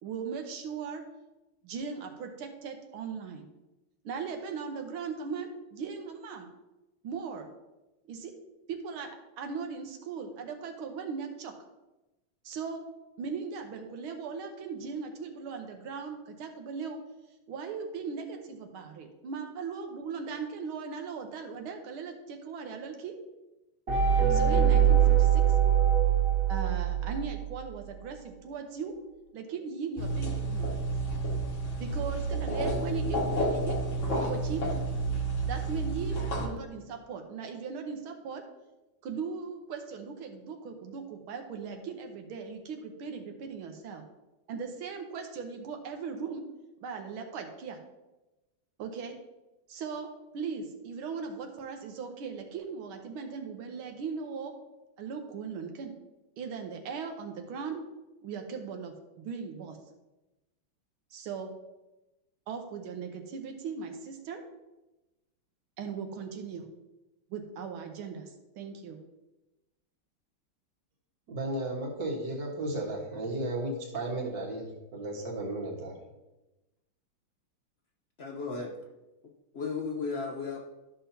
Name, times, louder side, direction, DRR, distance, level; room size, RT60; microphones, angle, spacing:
voice 1, 0.0-1.0 1.6-3.5 4.0-6.5 7.0-7.5 8.1-8.3 8.7-9.1 9.4-11.5 12.4-12.9 13.2-17.0 17.5-23.1 24.3-25.4 26.5-28.9 29.3-30.9 31.8-33.9 34.2-34.9 35.4-38.4 39.0-44.0 44.5-46.4 46.8-47.8 48.8-49.1 49.7-54.5 55.0-55.9 56.4-57.8 58.2-59.8 61.1-61.5 62.5-64.4 65.8-66.7 67.3-69.0, right 5 dB, 80° right, 4 dB, 1.7 m, -38 dB
sound 1, 23.9-27.6, right 9 dB, 40° right, 2.3 m, -23 dB
sound 2, 30.0-36.5, right 2 dB, 45° left, 1.3 m, -30 dB
voice 2, 71.3-75.9, right 1 dB, 60° right, -1 dB, 2.1 m, -34 dB
voice 3, 78.2-78.7 79.5-80.6, left 4 dB, 65° left, 0 dB, 0.6 m, -34 dB
12.5 x 5.7 x 2.8 m, 1.0 s
omnidirectional pair, 2.3 m